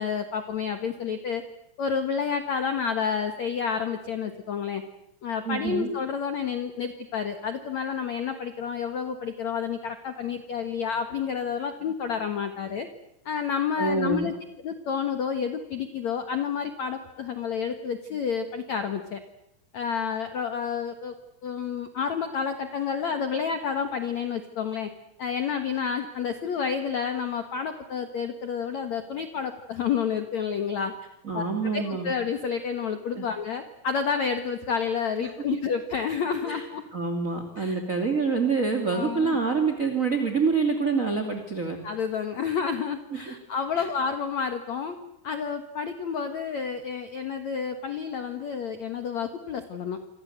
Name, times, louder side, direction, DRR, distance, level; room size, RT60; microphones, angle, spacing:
voice 1, 0.0-1.4 1.8-4.8 5.2-12.9 13.2-14.3 14.6-19.2 19.7-21.1 21.4-24.9 25.2-30.9 31.3-31.4 31.7-36.8 37.6-37.8 38.9-39.4 41.8-44.9 45.2-50.0, left 6 dB, 90° left, 7 dB, 1.5 m, -29 dB
voice 2, 5.4-5.9 13.8-14.3 31.2-32.1 33.1-33.3 35.2-35.3 36.4-36.6 36.9-41.8 43.1-43.3 43.7-43.9, right 4 dB, 25° right, 5 dB, 1.9 m, -26 dB
27.0 x 27.0 x 8.1 m, 0.81 s
omnidirectional pair, 5.7 m